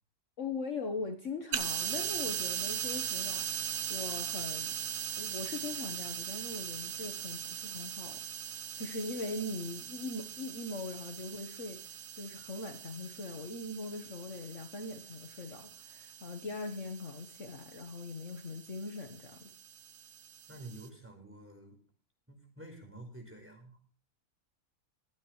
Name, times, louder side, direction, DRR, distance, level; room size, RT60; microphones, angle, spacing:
voice 1, 0.4-4.7 5.2-19.5, left 3 dB, 55° left, 5 dB, 1.6 m, -41 dB
sound 1, 1.5-20.9, right 9 dB, 85° right, 1.5 m, -40 dB
voice 2, 20.5-21.8 22.3-23.8, right 2 dB, 10° right, 3 dB, 4.8 m, -49 dB
21.5 x 9.3 x 3.2 m, 0.42 s
omnidirectional pair, 1.6 m